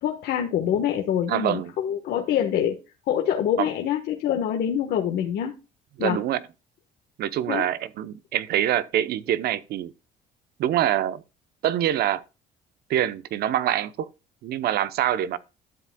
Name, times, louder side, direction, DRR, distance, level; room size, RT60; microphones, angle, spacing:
voice 1, 0.0-2.8 3.1-5.5 6.0-6.2 7.5-7.7, left 9 dB, 70° left, 1.3 m, -25 dB
voice 2, 1.3-1.7 3.6-3.7 6.0-6.4 7.2-9.9 10.6-11.2 11.6-12.2 12.9-14.1 14.4-15.4, right 11 dB, 70° right, 0.7 m, -25 dB
12.0 x 7.5 x 2.2 m
cardioid pair, 110°, 17 cm